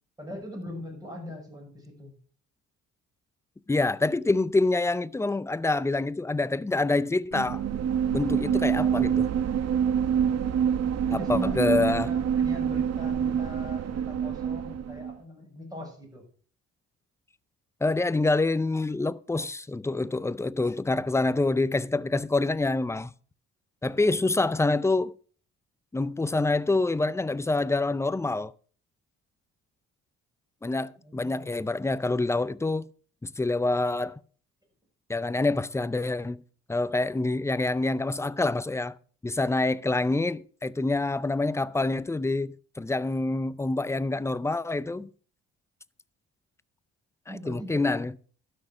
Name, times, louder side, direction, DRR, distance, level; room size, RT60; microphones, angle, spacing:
voice 1, 0.2-2.1 11.1-16.2 31.0-31.5 47.3-47.9, left 1 dB, 10° right, 6.0 m, -40 dB
voice 2, 3.7-7.6 8.1-9.3 11.1-12.1 17.8-23.1 23.8-25.1 25.9-28.5 30.6-32.9 33.2-34.2 35.1-36.4 36.7-39.0 39.2-45.1 47.3-48.1, left 2 dB, 10° left, 0.4 m, -26 dB
sound 1, 7.3-15.1, right 8 dB, 55° right, 1.0 m, -26 dB
12.5 x 6.4 x 6.0 m
cardioid pair, 90°, 30 cm